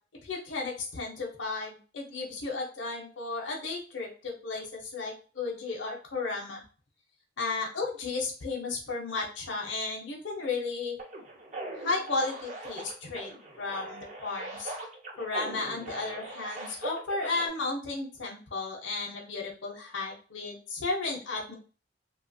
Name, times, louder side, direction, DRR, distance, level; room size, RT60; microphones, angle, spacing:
voice 1, 0.2-6.6 7.4-11.0 11.8-13.3 13.6-14.7 15.2-21.5, left 3 dB, 80° left, -1 dB, 0.7 m, -34 dB
sound 1, 11.0-17.5, right 2 dB, 40° right, 0.6 m, -41 dB
2.8 x 2.4 x 2.6 m, 0.37 s
head